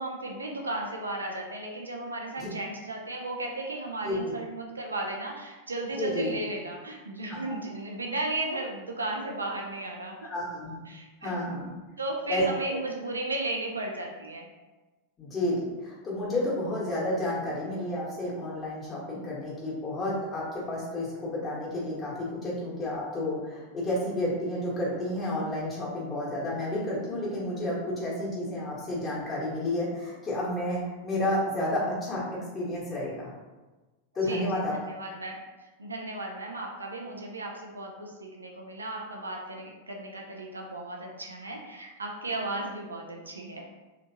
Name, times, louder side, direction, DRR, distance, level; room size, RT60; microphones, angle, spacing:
voice 1, 0.0-10.3 10.9-11.6 12.0-14.5 34.2-35.4 35.8-43.6, right 2 dB, 75° right, 0 dB, 0.4 m, -35 dB
voice 2, 6.0-6.4 7.3-7.4 10.2-10.8 11.2-11.7 12.3-12.4 15.2-33.3 34.1-34.7, left 1 dB, 20° left, -6 dB, 1.3 m, -31 dB
3.3 x 2.8 x 2.7 m, 1.2 s
figure-of-eight pair, 90°, 0 cm